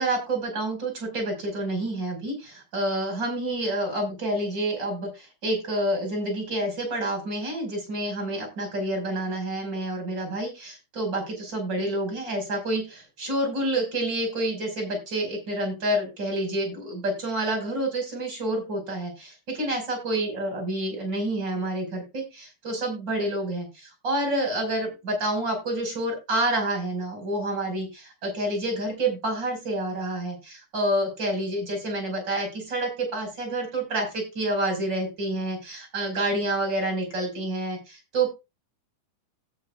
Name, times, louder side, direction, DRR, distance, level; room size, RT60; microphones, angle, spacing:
voice 1, 0.0-38.3, right 1 dB, 30° right, 5 dB, 5.5 m, -28 dB
17.5 x 7.6 x 2.3 m, 0.25 s
omnidirectional pair, 4.1 m